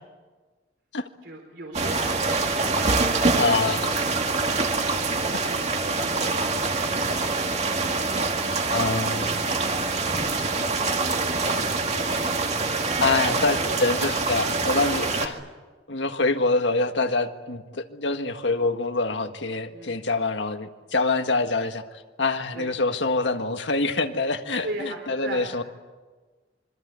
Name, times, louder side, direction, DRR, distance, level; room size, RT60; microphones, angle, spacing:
voice 1, 1.2-3.6 4.2-8.8 9.1-10.1 10.5-11.4 11.9-12.7 13.6-15.4 19.7-20.0 22.5-22.7 24.6-25.5, right 1 dB, 65° right, 1 dB, 4.0 m, -40 dB
sound 1, 1.7-15.3, right 3 dB, 35° right, 2.2 m, -25 dB
voice 2, 3.4-3.8 8.7-9.3 13.0-15.4 15.9-21.8 22.2-25.6, left 3 dB, 75° left, 6 dB, 1.7 m, -25 dB
26.5 x 24.5 x 8.3 m, 1.3 s
head